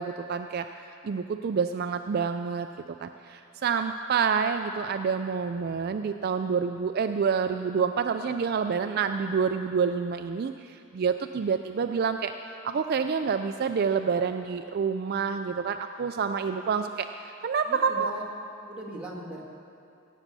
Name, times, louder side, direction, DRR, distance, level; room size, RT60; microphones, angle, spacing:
voice 1, 0.0-18.1, right 6 dB, 45° right, 7 dB, 0.3 m, -28 dB
voice 2, 17.7-18.2 18.7-19.4, right 1 dB, 5° right, -5 dB, 1.9 m, -39 dB
16.5 x 8.3 x 6.8 m, 2.6 s
head